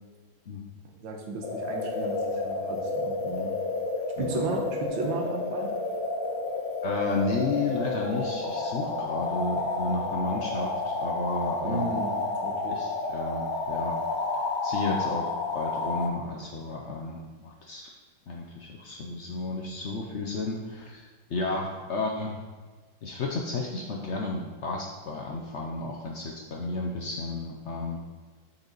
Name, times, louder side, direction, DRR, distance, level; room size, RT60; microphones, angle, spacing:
voice 1, 1.0-3.5 4.2-5.7 11.6-12.1 12.4-12.8, right 3 dB, 75° right, 0 dB, 1.7 m, -34 dB
sound 1, 1.4-16.1, left 3 dB, 75° left, 1.4 m, -30 dB
voice 2, 6.8-11.9 12.7-14.0 14.6-17.9 18.3-21.0 21.3-22.4 23.0-28.0, left 3 dB, 90° left, 0 dB, 0.6 m, -32 dB
7.2 x 5.4 x 3.9 m, 1.4 s
omnidirectional pair, 2.2 m